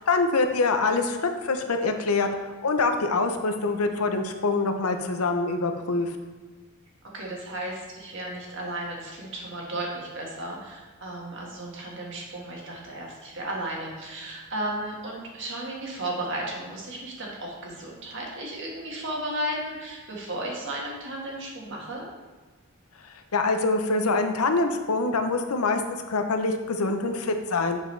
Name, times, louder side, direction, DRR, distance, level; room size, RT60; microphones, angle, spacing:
voice 1, 0.0-6.2 23.0-25.8 26.1-27.8, left 3 dB, 80° left, 6 dB, 0.7 m, -25 dB
voice 2, 7.1-22.1, right 1 dB, 60° right, -2 dB, 1.7 m, -34 dB
7.3 x 6.2 x 3.3 m, 1.3 s
head